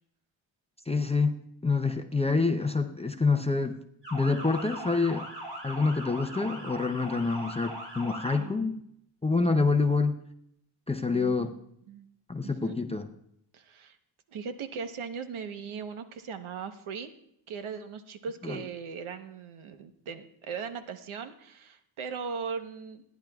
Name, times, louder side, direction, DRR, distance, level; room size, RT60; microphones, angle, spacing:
voice 1, 0.9-1.4 1.6-3.8 4.1-5.3 5.6-8.7 9.2-10.2 10.9-11.5 12.3-13.1 18.4-18.6, left 4 dB, 15° left, 6 dB, 0.4 m, -27 dB
Motor vehicle (road) / Siren, 4.0-8.4, right 1 dB, 60° right, 6.6 m, -40 dB
voice 2, 8.3-8.8 11.1-11.5 11.9-12.0 12.4-12.8 13.5-14.0 14.3-17.1 17.5-23.0, right 6 dB, 80° right, 8 dB, 1.0 m, -39 dB
26.5 x 10.5 x 2.3 m, 0.74 s
wide cardioid pair, 165°, 48 cm